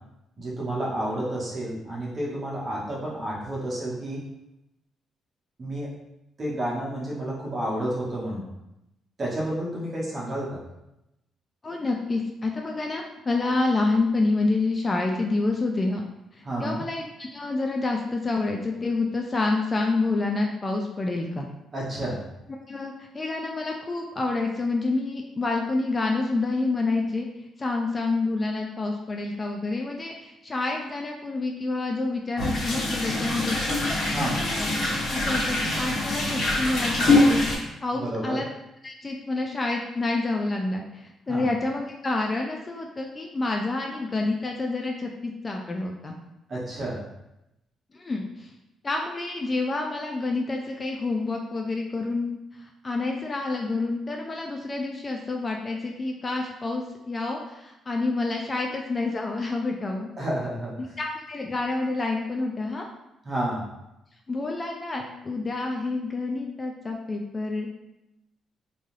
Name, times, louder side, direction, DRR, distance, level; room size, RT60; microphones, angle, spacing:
voice 1, 0.4-4.2 5.6-5.9 6.4-8.5 9.2-10.6 16.4-16.8 21.7-22.2 34.1-34.4 37.9-38.4 41.3-41.5 46.5-47.0 60.2-60.9 63.2-63.7, right 1 dB, 35° right, -5 dB, 0.9 m, -30 dB
voice 2, 11.6-16.0 16.3-21.5 22.7-27.3 27.6-33.6 34.2-34.7 35.1-38.5 38.8-46.2 47.9-48.5 48.8-60.1 61.0-62.9 64.3-67.7, left 3 dB, 30° left, 1 dB, 0.3 m, -28 dB
sound 1, 32.4-37.6, left 2 dB, 50° left, 1.2 m, -24 dB
2.5 x 2.3 x 3.1 m, 0.90 s
cardioid pair, 90°, 0 cm